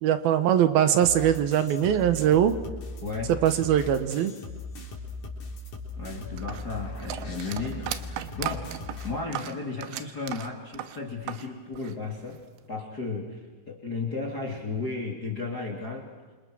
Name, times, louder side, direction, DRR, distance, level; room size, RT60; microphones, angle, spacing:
voice 1, 0.0-2.5 3.3-4.3, right 10 dB, 65° right, 11 dB, 2.6 m, -22 dB
sound 1, 0.9-9.1, left 3 dB, 45° left, 5.2 m, -39 dB
voice 2, 3.0-3.4 6.0-8.1 8.3-8.8 9.0-12.4 12.7-16.1, left 4 dB, 25° left, 2 dB, 2.7 m, -34 dB
sound 2, 6.4-11.5 11.7-12.6, right 12 dB, 90° right, 3.7 m, -36 dB
28.5 x 27.5 x 6.3 m, 1.4 s
omnidirectional pair, 5.5 m